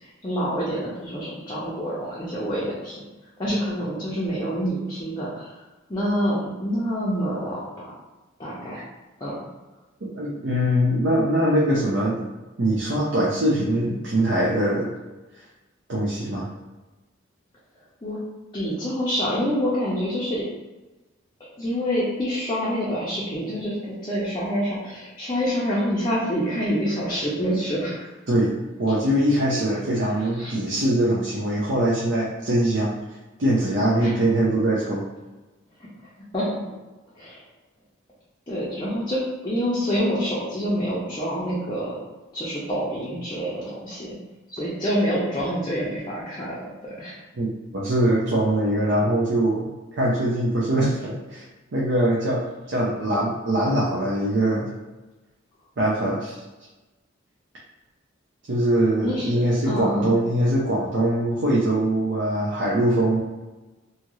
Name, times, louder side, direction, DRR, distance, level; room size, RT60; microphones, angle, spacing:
voice 1, 0.2-3.0 3.4-5.6 5.9-7.9 8.4-8.8 9.2-9.4 18.0-18.2 18.5-20.5 21.6-28.1 30.4-30.5 34.0-34.1 36.3-36.6 37.1-37.4 38.5-42.0 42.3-44.2 44.5-47.2 59.0-60.1, equal, 20° left, -8 dB, 0.5 m, -27 dB
voice 2, 10.0-12.2 12.6-14.9 15.9-16.5 28.3-33.0 33.4-35.0 47.4-47.5 47.7-51.4 51.7-54.7 55.8-56.4 58.5-63.2, right 1 dB, 60° right, -6 dB, 0.6 m, -22 dB
2.7 x 2.4 x 3.0 m, 1.1 s
head